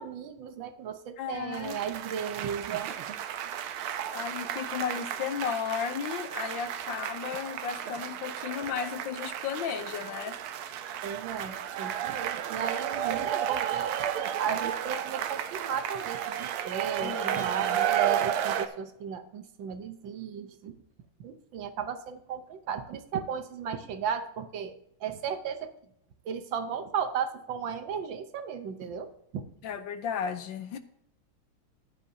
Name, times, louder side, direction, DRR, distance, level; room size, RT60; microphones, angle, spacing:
voice 1, 0.0-2.9 11.0-13.9 14.4-20.7 21.2-24.7 25.0-25.7 26.2-29.5, right 7 dB, 70° right, 9 dB, 1.5 m, -35 dB
voice 2, 1.2-1.8 4.1-10.4 17.0-17.8 29.6-30.8, left 7 dB, 70° left, 10 dB, 1.3 m, -34 dB
sound 1, 1.5-18.7, right 10 dB, 90° right, 1.6 m, -33 dB
14.5 x 10.5 x 2.7 m, 0.73 s
omnidirectional pair, 2.3 m